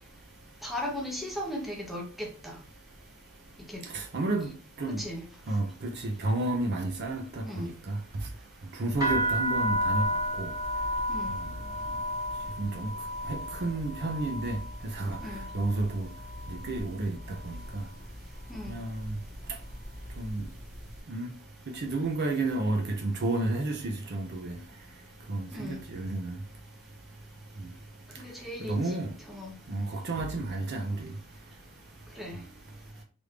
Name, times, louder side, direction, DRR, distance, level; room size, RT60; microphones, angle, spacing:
voice 1, 0.6-2.6 3.7-3.8 5.0-5.2 7.4-7.7 11.1-11.3 15.2-15.4 18.5-18.8 25.5-25.8 28.2-29.0 29.3-29.5 32.2-32.4, left 1 dB, ahead, 0.8 m, -37 dB
voice 2, 3.9-4.5 4.8-5.0 5.5-8.0 8.7-10.1 10.4-10.5 11.3-11.5 12.6-12.9 13.3-14.6 14.8-15.2 15.5-16.1 16.5-17.8 18.7-19.1 20.2-20.4 21.1-21.3 21.7-24.6 25.3-26.4 28.7-29.1 29.7-31.1, right 2 dB, 50° right, 0.5 m, -31 dB
sound 1, 8.9-16.9 17.1-17.8 18.4-18.7 19.0-20.4, equal, 15° right, 1.2 m, -33 dB
3.3 x 2.6 x 3.2 m
head